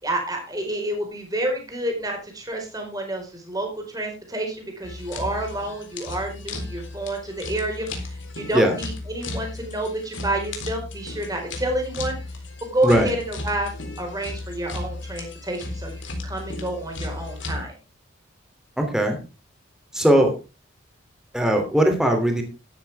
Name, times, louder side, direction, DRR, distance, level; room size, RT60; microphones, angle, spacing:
voice 1, 0.0-12.2 12.6-17.7, right 1 dB, 20° right, 3 dB, 4.6 m, -29 dB
sound 1, 4.8-17.6, left 2 dB, 70° left, 3.8 m, -35 dB
voice 2, 18.8-19.2 19.9-20.4 21.3-22.4, right 1 dB, 5° right, 4 dB, 2.9 m, -19 dB
13.0 x 12.5 x 3.5 m, 0.29 s
head